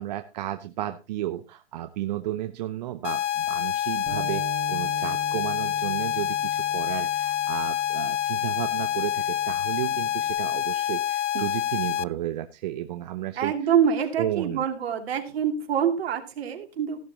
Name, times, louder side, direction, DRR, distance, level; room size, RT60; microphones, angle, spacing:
voice 1, 0.0-13.7 14.2-14.6, right 14 dB, 40° right, 8 dB, 0.8 m, -33 dB
sound 1, 3.0-12.0, left 12 dB, 85° left, 0.6 m, -27 dB
Bass guitar, 4.1-10.3, right 6 dB, 15° right, 2.9 m, -42 dB
voice 2, 13.4-17.0, right 8 dB, 60° right, 4 dB, 2.9 m, -25 dB
14.5 x 12.0 x 2.9 m, 0.29 s
hypercardioid pair, 145°, 35 cm